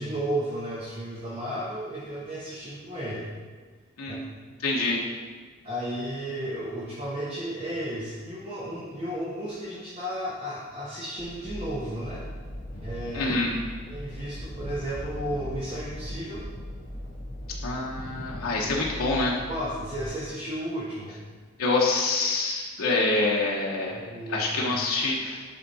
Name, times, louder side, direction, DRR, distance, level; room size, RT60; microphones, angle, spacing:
voice 1, 0.0-3.3 4.1-4.2 5.6-12.2 12.8-13.4 13.9-16.4 19.5-21.2 23.9-24.7, right 1 dB, 25° right, -8 dB, 1.1 m, -33 dB
voice 2, 4.0-4.3 4.6-5.0 13.1-13.5 17.6-19.3 21.6-25.4, left 3 dB, 80° left, -3 dB, 0.9 m, -26 dB
sound 1, 11.2-20.1, equal, 40° left, 1.6 m, -39 dB
9.1 x 3.6 x 4.1 m, 1.4 s
head